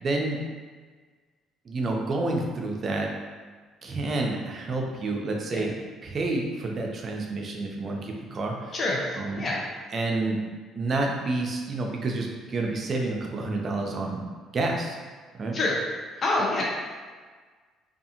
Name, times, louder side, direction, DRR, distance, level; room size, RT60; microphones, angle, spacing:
voice 1, 0.0-0.4 1.7-3.1 3.8-5.7 6.0-8.7 9.2-9.5 9.9-10.4 10.8-14.2 14.5-15.0 15.4-15.6, right 2 dB, 45° right, 1 dB, 0.5 m, -29 dB
voice 2, 8.7-9.6 15.5-15.8 16.2-16.6, left 2 dB, 40° left, -3 dB, 0.6 m, -26 dB
2.5 x 2.4 x 2.8 m, 1.5 s
supercardioid pair, 75°, 0 cm